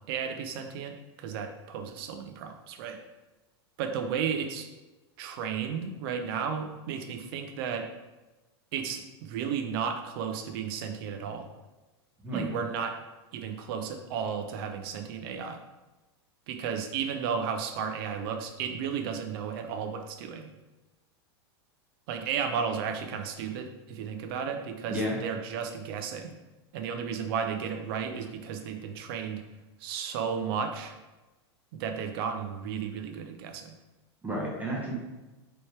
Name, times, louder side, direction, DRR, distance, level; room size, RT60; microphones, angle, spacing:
voice 1, 0.1-3.0 3.8-4.7 5.2-7.9 8.7-11.5 12.3-13.0 13.3-15.6 16.5-20.5 22.1-26.3 26.7-29.4 29.8-30.9 31.7-33.8, right 7 dB, 60° right, 5 dB, 0.6 m, -33 dB
voice 2, 34.2-34.9, right 1 dB, 10° right, -3 dB, 1.2 m, -31 dB
4.3 x 3.2 x 3.2 m, 1.1 s
hypercardioid pair, 120°, 14 cm